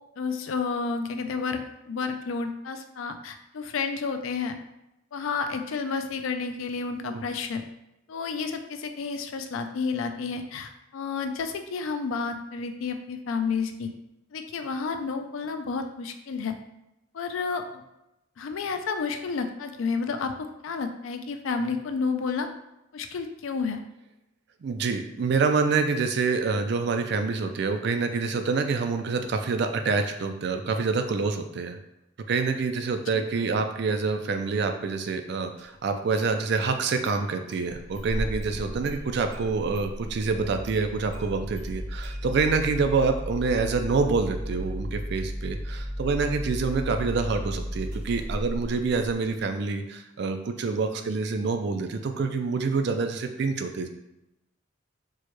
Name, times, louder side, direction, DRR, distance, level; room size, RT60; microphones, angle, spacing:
voice 1, 0.2-1.6 1.9-4.6 5.1-7.6 8.1-13.9 14.3-16.6 17.1-17.8 18.4-22.5 22.9-23.8 33.1-33.2, left 5 dB, 80° left, 7 dB, 0.4 m, -31 dB
voice 2, 24.6-31.8 32.3-53.9, right 4 dB, 55° right, 7 dB, 0.4 m, -27 dB
Engine starting, 35.6-35.7 36.1-36.7 37.0-37.1 37.5-49.4, equal, 30° right, 1.3 m, -35 dB
4.5 x 2.2 x 3.0 m, 0.90 s
head